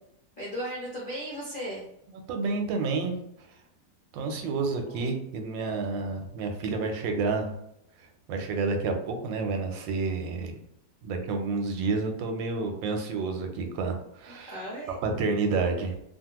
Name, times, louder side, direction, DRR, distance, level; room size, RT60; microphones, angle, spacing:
voice 1, 0.4-1.9 4.4-4.5 4.8-5.1 14.3-15.0, equal, 50° left, -7 dB, 0.6 m, -37 dB
voice 2, 2.3-3.1 4.1-7.5 8.0-10.6 11.0-14.6 15.0-15.9, right 4 dB, 90° right, 4 dB, 1.3 m, -29 dB
2.8 x 2.4 x 2.8 m, 0.76 s
omnidirectional pair, 2.0 m